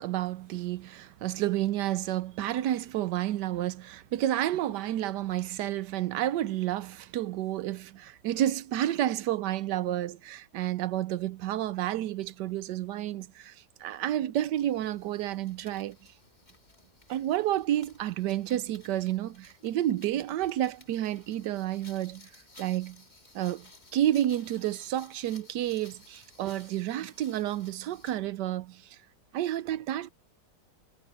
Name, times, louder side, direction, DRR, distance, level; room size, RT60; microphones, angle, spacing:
voice 1, 0.0-13.5 13.8-16.0 17.1-22.3 22.6-23.0 23.3-23.7 23.9-28.8 29.3-30.1, right 12 dB, 80° right, 1.2 m, -30 dB
sound 1, 14.5-28.3, left 2 dB, 25° left, 2.5 m, -57 dB
omnidirectional pair, 1.9 m